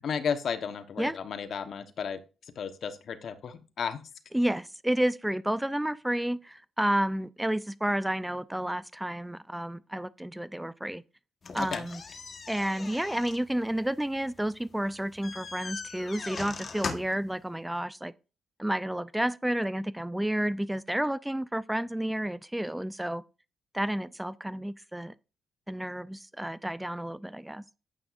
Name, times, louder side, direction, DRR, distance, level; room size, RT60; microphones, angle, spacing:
voice 1, 0.0-4.0 11.6-11.9, left 6 dB, 60° left, 1.1 m, -34 dB
voice 2, 4.3-11.0 11.5-12.0 12.5-18.1 18.6-23.2 23.7-25.1 25.7-27.6, right 1 dB, 5° right, 0.4 m, -31 dB
sound 1, 11.4-17.3, left 4 dB, 45° left, 1.3 m, -40 dB
10.5 x 8.9 x 2.5 m
cardioid pair, 70°, 0 cm